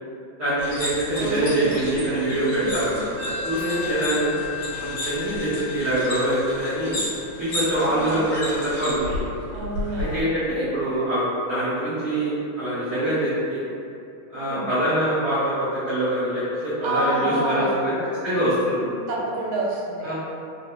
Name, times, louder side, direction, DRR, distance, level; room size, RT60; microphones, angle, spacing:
voice 1, 0.4-4.3 4.7-7.0 7.4-9.3 10.0-13.6 14.3-17.9 18.2-18.8 20.0-20.2, right 1 dB, 50° right, -13 dB, 0.8 m, -24 dB
sound 1, 0.6-10.2, left 1 dB, 85° left, 2.2 m, -33 dB
voice 2, 1.1-1.9 2.3-2.8 3.7-4.3 7.8-8.2 9.5-10.3 14.3-14.7 16.8-17.8 19.1-20.2, right 2 dB, 75° right, -4 dB, 1.3 m, -28 dB
Telephone, 3.2-8.5, left 9 dB, 65° left, 1.5 m, -36 dB
4.3 x 2.1 x 2.8 m, 2.7 s
omnidirectional pair, 2.3 m